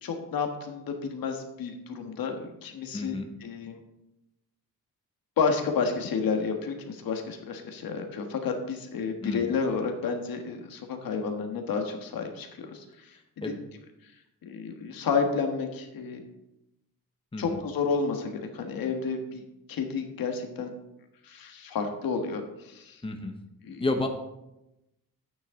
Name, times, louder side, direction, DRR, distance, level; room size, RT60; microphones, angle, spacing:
voice 1, 0.0-3.8 5.4-12.8 14.4-16.2 17.4-19.4 19.7-20.7 21.2-23.0 23.6-23.8, left 5 dB, 75° left, 4 dB, 1.6 m, -31 dB
voice 2, 2.9-3.3 9.2-9.5 13.4-13.6 17.3-17.6 23.0-23.3 23.8-24.1, left 2 dB, 15° left, 4 dB, 1.0 m, -31 dB
10.0 x 9.0 x 3.8 m, 0.91 s
cardioid pair, 115°, 35 cm